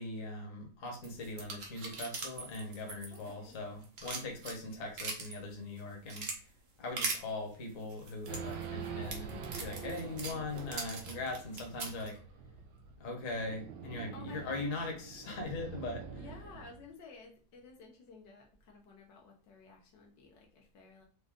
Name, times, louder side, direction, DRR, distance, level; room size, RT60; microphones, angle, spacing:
voice 1, 0.0-6.4 6.8-12.2 13.0-16.1, left 2 dB, 50° left, 1 dB, 1.4 m, -40 dB
sound 1, 1.0-3.5 3.8-5.4 5.8-6.4 7.0-7.2 7.9-12.1, right 3 dB, 45° right, 0.9 m, -40 dB
voice 2, 3.1-3.5 14.1-14.9 16.1-21.0, left 3 dB, 80° left, 0 dB, 1.6 m, -54 dB
Race car auto racing / Idling / Accelerating revving vroom, 8.3-16.9, right 6 dB, 80° right, 1.4 m, -45 dB
4.9 x 2.6 x 3.5 m, 0.40 s
omnidirectional pair, 1.9 m